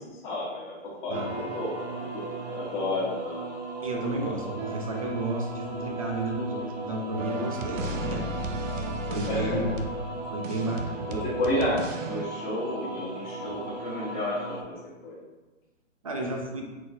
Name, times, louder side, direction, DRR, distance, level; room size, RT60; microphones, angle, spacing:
voice 1, 0.1-0.7 1.0-1.7 2.1-3.4 9.3-9.7 11.1-11.8 12.1-15.2, left 1 dB, 40° left, -10 dB, 1.5 m, -31 dB
sound 1, 1.1-14.6, right 2 dB, 60° right, 1.1 m, -37 dB
voice 2, 3.8-8.2 8.6-9.8 10.3-11.1 16.0-16.7, right 1 dB, 30° right, 2 dB, 0.4 m, -32 dB
sound 2, 7.2-12.2, right 1 dB, 80° right, 0.7 m, -34 dB
4.1 x 4.0 x 2.5 m, 1.2 s
hypercardioid pair, 150°, 38 cm